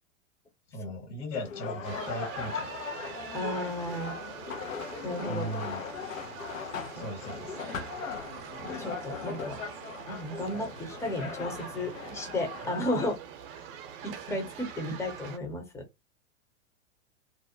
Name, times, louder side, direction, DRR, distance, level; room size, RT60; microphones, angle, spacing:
voice 1, 0.7-2.7 5.3-5.8 6.9-7.6, equal, 60° left, 1.5 m, -37 dB
sound 1, 1.3-13.1, left 6 dB, 85° left, 0.8 m, -39 dB
sound 2, 1.8-15.4, right 8 dB, 45° right, 0.7 m, -44 dB
voice 2, 3.3-4.1 5.0-5.5 6.9-7.1 8.6-9.6 10.1-13.2 14.0-15.8, left 1 dB, 5° left, 0.6 m, -34 dB
2.6 x 2.0 x 2.6 m
hypercardioid pair, 115°, 39 cm